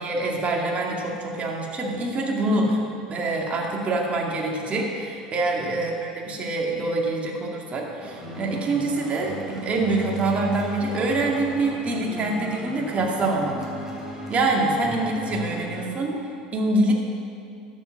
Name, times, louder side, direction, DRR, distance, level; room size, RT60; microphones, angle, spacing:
voice 1, 0.0-2.8 3.1-13.6 14.3-16.9, right 2 dB, 35° right, -1 dB, 2.2 m, -25 dB
sound 1, 8.0-15.9, right 2 dB, 10° right, 3.2 m, -35 dB
12.0 x 7.6 x 5.9 m, 2.5 s
hypercardioid pair, 85°, 4 cm